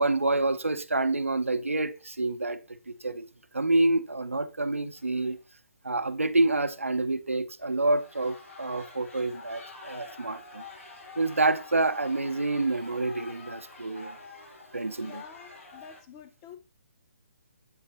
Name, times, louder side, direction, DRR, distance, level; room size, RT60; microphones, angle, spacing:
voice 1, 0.0-2.6 2.9-3.3 3.5-5.4 5.8-10.6 11.2-14.2 14.7-15.2, right 2 dB, 80° right, 0.6 m, -27 dB
sound 1, 3.8-4.0 4.2-4.3 5.0-5.4 6.5-7.0 7.6-16.0, left 3 dB, 75° left, 2.4 m, -47 dB
voice 2, 15.0-16.6, left 8 dB, 25° left, 0.5 m, -47 dB
8.2 x 3.3 x 4.2 m
figure-of-eight pair, 135°, 7 cm